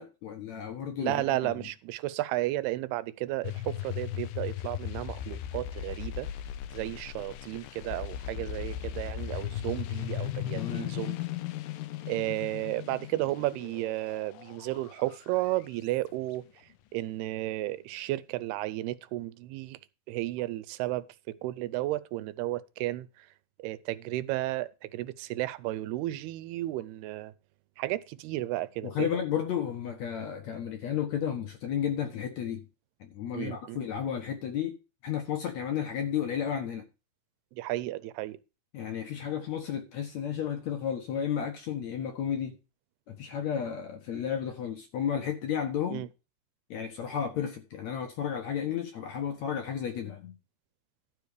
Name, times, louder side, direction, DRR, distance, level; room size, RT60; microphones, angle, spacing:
voice 1, 0.0-1.5 10.5-10.9 28.8-32.7 33.0-36.8 38.7-42.6 43.1-46.1 46.7-50.4, left 8 dB, 60° left, 2.1 m, -33 dB
voice 2, 1.0-6.3 6.7-11.2 12.1-16.4 16.9-19.8 20.1-23.3 23.6-27.3 27.8-29.2 33.3-33.8 37.5-38.4 45.9-46.1, right 16 dB, 90° right, 2.7 m, -33 dB
sound 1, 3.4-15.9, left 12 dB, 75° left, 2.1 m, -37 dB
12.5 x 4.9 x 6.7 m
omnidirectional pair, 4.5 m